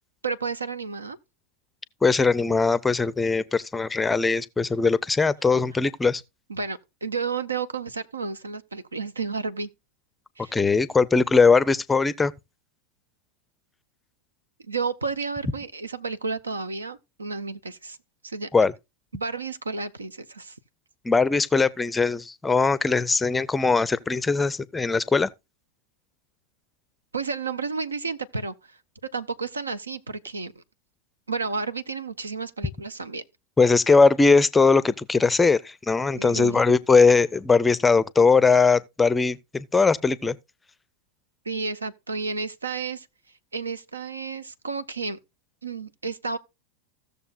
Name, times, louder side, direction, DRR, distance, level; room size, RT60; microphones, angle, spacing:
voice 1, 0.2-1.2 6.5-9.7 10.4-10.6 14.6-18.0 18.2-18.5 19.1-20.6 27.1-28.8 29.1-30.6 31.3-33.2 36.1-36.8 41.4-43.1 43.5-45.2 45.6-46.4, right 4 dB, 75° right, 0.9 m, -31 dB
voice 2, 2.0-6.2 10.5-12.3 18.5-18.7 21.0-25.3 33.6-40.4, left 4 dB, 10° left, 0.5 m, -20 dB
16.0 x 6.8 x 2.5 m
figure-of-eight pair, 90°, 0 cm